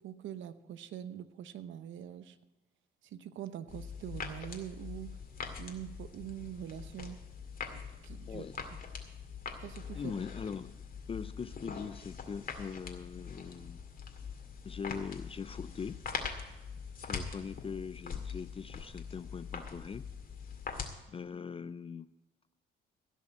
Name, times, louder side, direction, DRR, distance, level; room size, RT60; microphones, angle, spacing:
voice 1, 0.0-2.4 3.0-5.1 5.6-7.2 7.7-8.4 9.6-10.1, right 10 dB, 75° right, 12 dB, 0.8 m, -44 dB
sound 1, 3.7-20.9, left 5 dB, 45° left, 2.1 m, -43 dB
voice 2, 9.9-10.8 11.1-13.8 14.6-16.0 17.0-20.1 21.1-22.1, left 6 dB, 30° left, 15 dB, 0.4 m, -41 dB
16.5 x 5.6 x 7.8 m, 1.0 s
cardioid pair, 90°, 20 cm